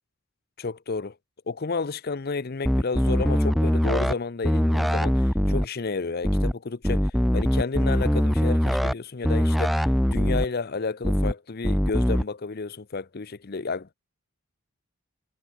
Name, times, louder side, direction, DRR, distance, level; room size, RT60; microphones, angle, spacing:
voice 1, 0.6-1.1 1.5-13.9, left 4 dB, 45° left, 0.6 m, -31 dB
sound 1, 2.6-4.1 4.4-5.6 6.2-6.5 6.8-8.9 9.2-10.4 11.0-11.3 11.6-12.2, equal, ahead, 0.4 m, -22 dB
head